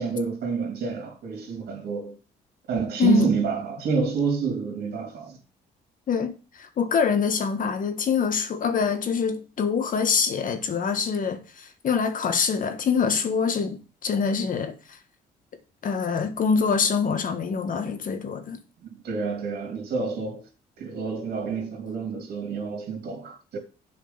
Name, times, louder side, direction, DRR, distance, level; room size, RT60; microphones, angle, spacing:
voice 1, 0.0-2.2 2.7-5.4 18.8-20.4 20.8-23.6, right 5 dB, 70° right, 2.9 m, -28 dB
voice 2, 6.6-14.7 15.8-18.6, left 6 dB, 55° left, 1.7 m, -25 dB
8.0 x 5.0 x 7.0 m
cardioid pair, 85°, 16 cm